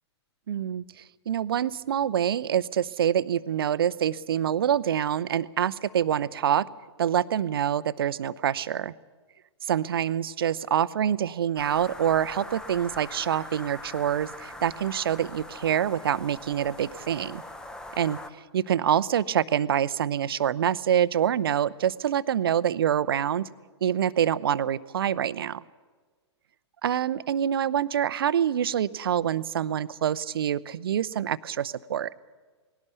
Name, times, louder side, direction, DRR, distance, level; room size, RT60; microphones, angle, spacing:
voice 1, 0.5-6.7 7.0-8.9 9.7-17.4 18.0-18.2 18.5-23.5 23.8-25.6 26.8-32.1, right 9 dB, 55° right, 17 dB, 0.7 m, -26 dB
sound 1, 11.6-18.3, left 1 dB, 5° left, 0.9 m, -42 dB
19.0 x 17.0 x 8.3 m, 1.4 s
figure-of-eight pair, 110°, 15 cm